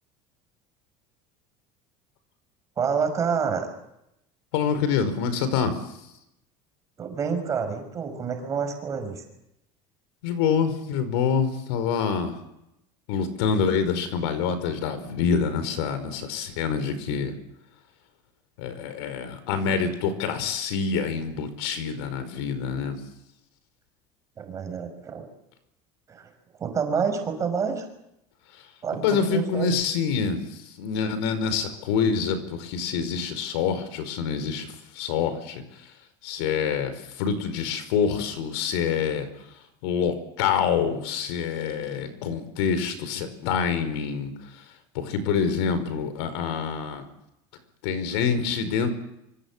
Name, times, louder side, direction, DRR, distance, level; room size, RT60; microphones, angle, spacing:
voice 1, 2.8-3.7 7.0-9.2 24.4-25.3 26.1-26.3 26.6-27.9 28.8-29.7, right 6 dB, 25° right, 6 dB, 5.7 m, -28 dB
voice 2, 4.5-5.7 10.2-12.3 13.1-17.3 18.6-23.0 29.0-30.5 30.8-35.6 36.2-39.3 39.8-44.3 44.9-47.0 47.8-48.9, left 6 dB, 90° left, 11 dB, 5.0 m, -26 dB
26.0 x 25.0 x 7.4 m, 0.83 s
cardioid pair, 165°, 13 cm